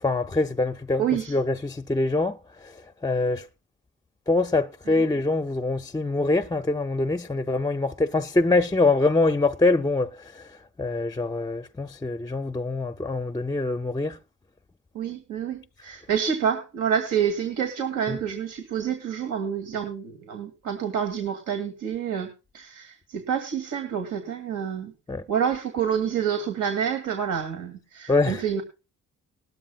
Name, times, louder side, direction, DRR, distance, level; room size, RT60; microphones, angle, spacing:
voice 1, 0.0-1.0 1.3-2.4 3.0-3.4 4.3-10.1 10.8-14.2 18.1-18.2 25.1-25.2 28.1-28.4, left 2 dB, 15° left, 0.5 m, -24 dB
voice 2, 1.0-1.4 4.9-5.1 14.9-24.9 25.3-28.6, right 8 dB, 80° right, 2.3 m, -28 dB
19.5 x 13.0 x 2.3 m
cardioid pair, 90°, 30 cm